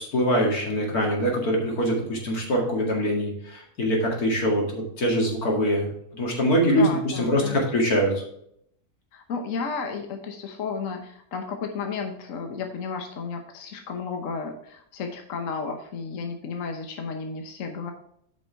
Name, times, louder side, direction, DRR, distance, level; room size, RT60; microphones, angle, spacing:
voice 1, 0.0-8.2, equal, 90° left, 0 dB, 2.7 m, -24 dB
voice 2, 6.8-7.7 9.1-17.9, left 5 dB, 65° left, 5 dB, 1.3 m, -33 dB
8.6 x 5.4 x 4.5 m, 0.70 s
omnidirectional pair, 1.5 m